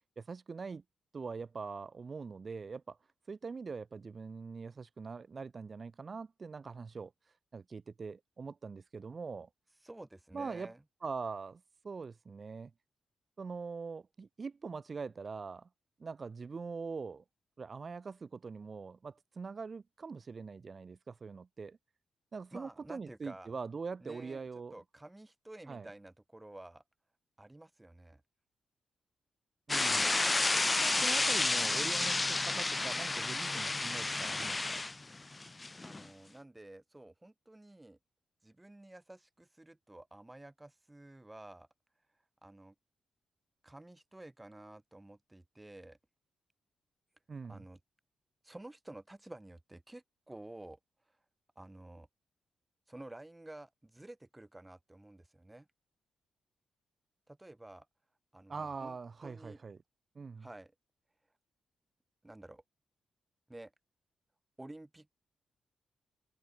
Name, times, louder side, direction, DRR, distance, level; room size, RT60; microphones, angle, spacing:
voice 1, 0.2-0.8 1.1-3.0 3.3-7.1 7.5-9.5 10.3-10.7 11.0-12.7 13.4-15.7 16.0-17.2 17.6-21.8 22.3-24.7 25.7-25.9 29.7-30.1 30.8-34.8 47.3-47.6 58.5-59.8 60.2-60.5, right 4 dB, 35° right, 4.1 m, -43 dB
voice 2, 9.8-10.8 22.5-23.5 24.0-24.4 24.7-26.8 27.4-28.2 35.8-38.0 38.4-41.7 42.4-42.7 43.6-46.0 47.5-47.8 48.4-50.8 51.6-52.1 52.9-55.7 57.3-57.9 58.3-59.0 59.2-59.6 60.4-60.7 62.2-62.6 63.5-63.7 64.6-65.2, right 1 dB, 10° right, 4.4 m, -51 dB
sound 1, 29.7-36.1, left 3 dB, 20° left, 0.3 m, -31 dB
wide cardioid pair, 140°, 0 cm